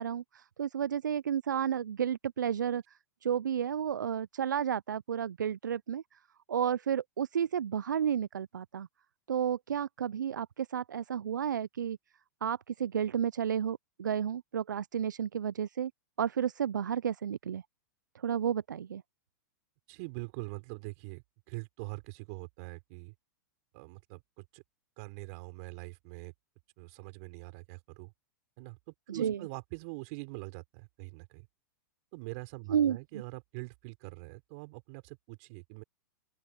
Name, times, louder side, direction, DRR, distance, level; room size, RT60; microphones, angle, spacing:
voice 1, 0.0-2.8 3.2-6.0 6.5-8.9 9.3-12.0 12.4-15.9 16.2-17.6 18.2-19.0 29.1-29.4 32.7-33.0, right 8 dB, 90° right, 0.4 m, -32 dB
voice 2, 19.9-23.1 23.7-24.6 25.0-26.3 26.8-28.1 28.6-31.5 32.1-35.8, right 29 dB, 50° right, 4.5 m, -44 dB
open air
hypercardioid pair, 115°, 10 cm